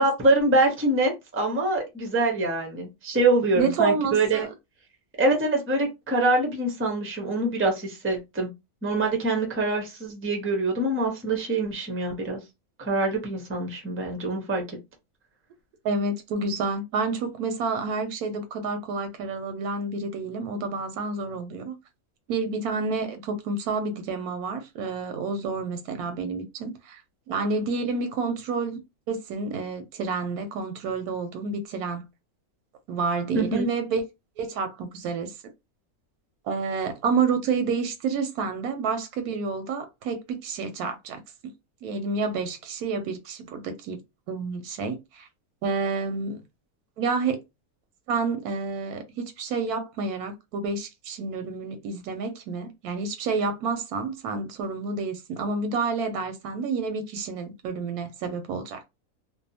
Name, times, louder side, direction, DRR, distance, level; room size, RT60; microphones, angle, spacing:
voice 1, 0.0-4.5 5.2-8.5 8.8-12.4 12.8-14.8 33.3-33.7, right 2 dB, 15° right, 0.4 m, -24 dB
voice 2, 3.6-4.5 15.8-21.7 22.3-27.0 27.3-28.8 29.1-32.1 32.9-34.0 34.4-35.3 36.5-41.2 41.8-44.0 44.3-45.3 45.6-46.4 47.0-47.4 48.1-58.9, right 4 dB, 90° right, 1.1 m, -29 dB
2.7 x 2.1 x 2.7 m
omnidirectional pair, 1.5 m